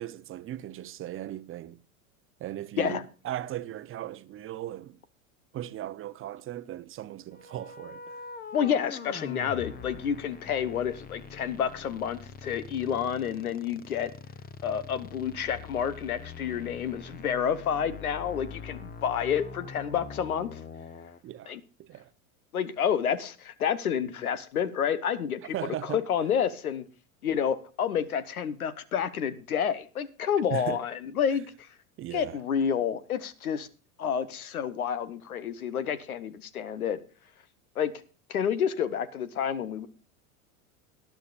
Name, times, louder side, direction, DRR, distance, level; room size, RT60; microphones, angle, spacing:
voice 1, 0.0-1.8 2.4-5.0 5.5-8.2 21.2-22.1 25.5-26.0 30.5-30.8 32.0-32.4, right 12 dB, 30° right, 0.7 m, -37 dB
sound 1, 7.3-21.2, left 5 dB, 20° left, 1.0 m, -44 dB
voice 2, 8.5-14.1 14.6-20.6 21.5-21.6 22.5-25.5 25.9-26.8 27.2-31.7 32.1-33.7 34.0-37.0 37.8-37.9 38.3-39.9, left 8 dB, 85° left, 1.1 m, -29 dB
19.0 x 10.5 x 2.5 m
hypercardioid pair, 90°, 42 cm